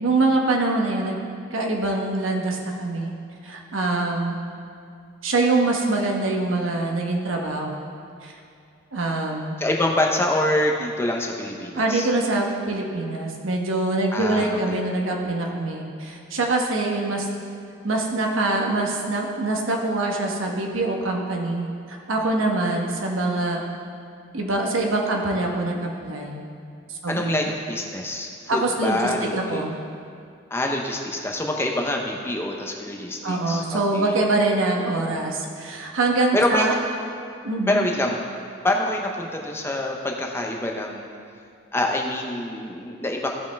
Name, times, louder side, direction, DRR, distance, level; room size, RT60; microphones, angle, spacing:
voice 1, 0.0-1.2 1.5-3.1 3.4-4.4 5.2-7.8 8.2-8.3 8.9-9.5 11.7-17.3 17.8-23.6 24.3-26.4 26.9-27.5 28.5-29.7 33.2-36.8 37.4-37.9, right 2 dB, 90° right, 0 dB, 1.1 m, -24 dB
voice 2, 9.6-12.1 14.1-14.8 27.1-29.6 30.5-34.1 36.3-36.7 37.7-38.2 38.6-41.1 41.7-43.3, left 1 dB, 10° left, 0 dB, 0.6 m, -26 dB
15.5 x 5.4 x 3.4 m, 2.4 s
head